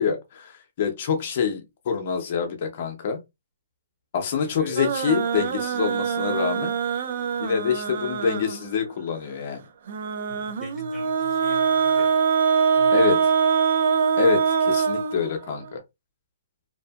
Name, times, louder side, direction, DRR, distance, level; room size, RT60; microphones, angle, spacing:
voice 1, 0.0-3.2 4.1-6.7 7.4-9.6 12.9-13.3 14.2-15.8, left 6 dB, 45° left, 0.6 m, -26 dB
sound 1, 4.8-8.8 9.9-15.7, right 6 dB, 55° right, 0.4 m, -23 dB
voice 2, 10.3-12.1 12.8-13.1, right 3 dB, 5° right, 0.9 m, -43 dB
2.6 x 2.4 x 2.3 m
hypercardioid pair, 145°, 0 cm